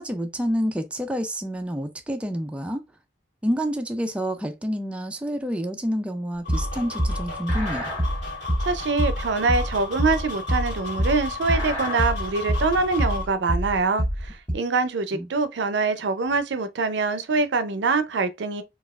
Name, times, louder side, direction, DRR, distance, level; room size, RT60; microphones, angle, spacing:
voice 1, 0.0-2.8 3.4-7.9 15.1-15.3, equal, 5° right, 0.3 m, -28 dB
sound 1, 6.4-13.3, left 4 dB, 40° left, 1.8 m, -35 dB
sound 2, 6.5-14.5, equal, 10° left, 1.5 m, -25 dB
voice 2, 8.6-18.6, right 4 dB, 75° right, 0.5 m, -24 dB
4.1 x 2.4 x 2.3 m
head